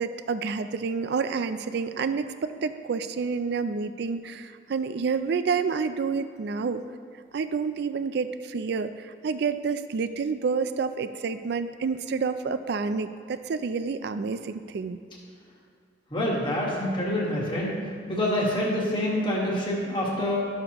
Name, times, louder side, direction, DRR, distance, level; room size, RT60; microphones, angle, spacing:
voice 1, 0.0-6.8 7.3-15.0, right 5 dB, 60° right, 11 dB, 0.3 m, -29 dB
voice 2, 16.1-17.7 18.1-20.4, left 1 dB, 25° left, -4 dB, 1.5 m, -26 dB
12.5 x 6.4 x 3.0 m, 2.1 s
head